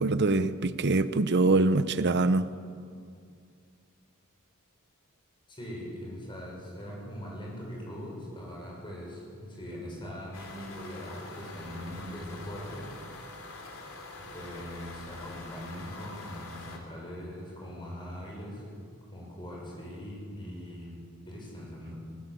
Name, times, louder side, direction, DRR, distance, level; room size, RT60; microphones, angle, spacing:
voice 1, 0.0-2.5, right 2 dB, 50° right, 13 dB, 0.8 m, -24 dB
voice 2, 5.5-13.1 14.2-18.6 19.1-22.0, equal, 20° left, -3 dB, 7.0 m, -41 dB
sound 1, 10.3-16.8, left 2 dB, 65° left, 3.2 m, -45 dB
20.5 x 18.5 x 8.5 m, 2.3 s
head